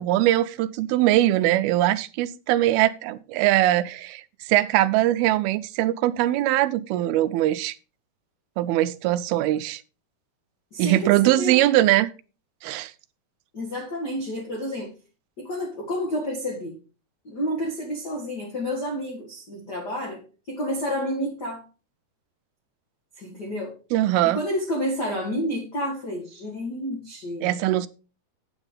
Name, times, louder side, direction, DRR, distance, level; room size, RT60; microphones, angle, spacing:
voice 1, 0.0-7.8 8.6-9.8 10.8-12.1 12.6-12.9 23.9-24.4 27.4-27.9, right 15 dB, 80° right, 12 dB, 2.4 m, -21 dB
voice 2, 10.7-11.6 13.5-14.9 15.4-16.7 17.2-20.2 20.5-21.6 23.2-23.7 24.2-27.5, equal, 45° left, 0 dB, 1.3 m, -30 dB
8.9 x 8.0 x 3.8 m, 0.34 s
omnidirectional pair, 4.6 m